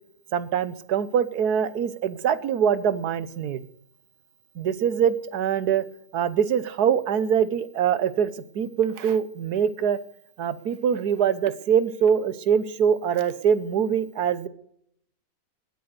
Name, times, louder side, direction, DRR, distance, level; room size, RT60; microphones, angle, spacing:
voice 1, 0.3-3.7 4.6-5.9 6.1-10.0 10.4-14.5, right 8 dB, 80° right, 16 dB, 1.5 m, -23 dB
19.5 x 9.4 x 6.6 m, 0.70 s
omnidirectional pair, 1.6 m